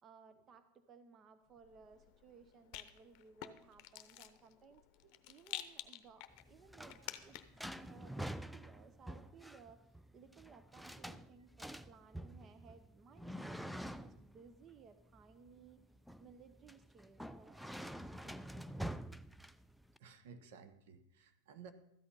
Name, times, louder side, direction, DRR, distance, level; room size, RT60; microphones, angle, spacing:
voice 1, 0.0-4.9 5.3-7.4 7.8-15.8 16.2-17.6 18.0-18.9, right 5 dB, 30° right, 11 dB, 0.8 m, -61 dB
Rattle, 1.6-7.7, left 14 dB, 50° left, 0.8 m, -51 dB
sound 1, 6.3-20.0, right 1 dB, ahead, 0.3 m, -48 dB
voice 2, 20.0-21.7, right 6 dB, 70° right, 10 dB, 1.2 m, -56 dB
13.5 x 8.7 x 5.5 m, 0.81 s
supercardioid pair, 135°, 0 cm